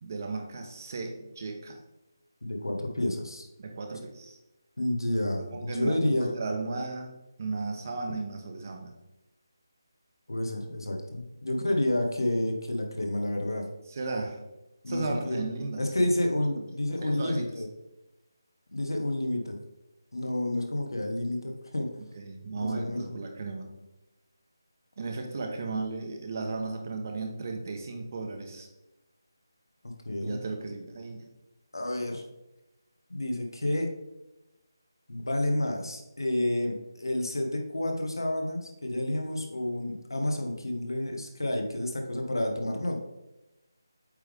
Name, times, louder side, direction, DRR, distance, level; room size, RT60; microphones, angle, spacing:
voice 1, 0.0-1.8 3.6-4.4 5.5-7.1 7.4-8.9 13.9-14.4 14.9-16.1 16.6-16.7 17.0-17.5 22.1-23.7 25.0-28.7 30.2-31.3, right 3 dB, 40° right, 4 dB, 1.0 m, -35 dB
voice 2, 2.4-3.5 4.8-6.3 10.3-13.7 14.8-15.4 15.8-17.7 18.7-19.6 20.1-22.0 22.5-23.1 30.0-30.4 31.7-32.2 33.1-33.9 35.1-43.0, left 1 dB, 80° left, 3 dB, 1.3 m, -30 dB
8.3 x 3.5 x 3.5 m, 0.99 s
figure-of-eight pair, 160°, 2 cm